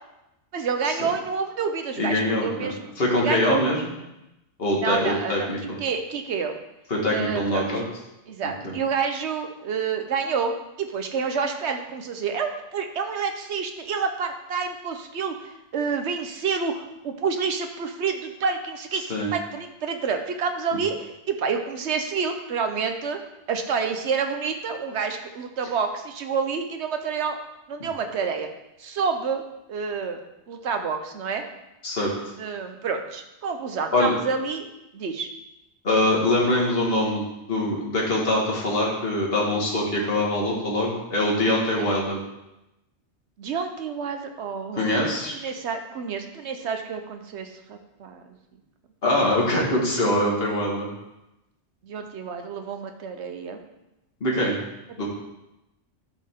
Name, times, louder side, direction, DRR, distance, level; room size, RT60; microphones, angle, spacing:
voice 1, 0.5-2.8 3.1-3.6 4.8-5.5 5.8-6.6 7.1-7.7 8.3-23.2 23.5-27.4 27.7-28.5 28.8-29.4 29.7-30.2 30.5-31.4 32.4-34.7 34.9-35.3 41.8-41.9 43.4-48.3 51.8-53.6, right 5 dB, 70° right, 6 dB, 1.2 m, -28 dB
voice 2, 2.0-2.7 3.0-3.8 4.6-5.6 6.9-7.8 8.6-8.7 19.1-19.3 27.8-27.9 31.8-32.1 33.9-34.1 35.8-37.2 37.5-42.2 44.7-45.4 49.0-50.9 54.2-54.5 55.0-55.1, left 1 dB, 55° left, -3 dB, 2.0 m, -23 dB
12.0 x 5.5 x 3.7 m, 0.93 s
omnidirectional pair, 1.2 m